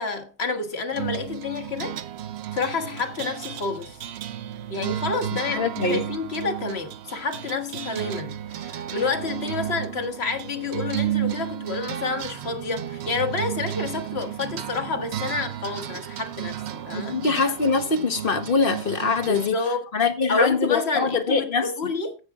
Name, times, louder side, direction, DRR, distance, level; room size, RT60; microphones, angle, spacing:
voice 1, 0.0-2.0 2.5-4.0 4.7-17.2 19.3-19.8 20.3-22.2, left 4 dB, 75° left, 1.7 m, -29 dB
sound 1, 0.9-19.5, right 11 dB, 75° right, 0.9 m, -33 dB
voice 2, 5.5-6.0 16.9-19.6 19.9-21.9, left 4 dB, 55° left, 1.4 m, -23 dB
15.5 x 6.0 x 3.6 m
omnidirectional pair, 1.1 m